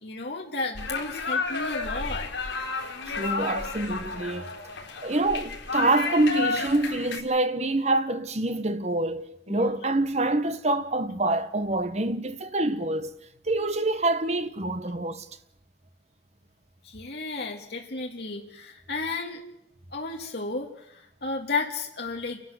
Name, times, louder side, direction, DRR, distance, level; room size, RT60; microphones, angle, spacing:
voice 1, 0.0-2.3 9.5-9.8 16.8-19.4 19.9-22.4, left 3 dB, 60° left, 2.0 m, -33 dB
sound 1, 0.7-7.2, left 4 dB, 85° left, 4.1 m, -32 dB
voice 2, 3.1-4.5 5.0-13.1 13.4-15.3, right 2 dB, 35° right, 1.0 m, -26 dB
29.5 x 12.0 x 7.8 m
head